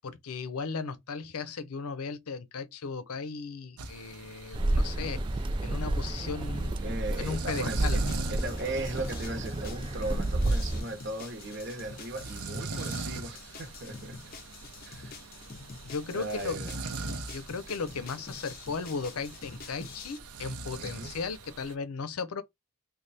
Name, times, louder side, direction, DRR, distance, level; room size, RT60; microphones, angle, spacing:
voice 1, 0.0-5.2 5.6-6.8 7.2-8.0 15.8-16.6 17.3-22.4, left 4 dB, 90° left, 0.6 m, -36 dB
sound 1, 3.8-21.7, right 3 dB, 90° right, 0.7 m, -42 dB
sound 2, 4.5-10.8, right 1 dB, 20° right, 0.3 m, -30 dB
voice 2, 6.8-8.0 8.3-14.2 14.8-15.1 16.1-16.8 20.8-21.1, right 2 dB, 50° right, 0.9 m, -37 dB
sound 3, 7.7-20.2, left 4 dB, 40° left, 0.5 m, -47 dB
3.3 x 2.2 x 4.1 m
head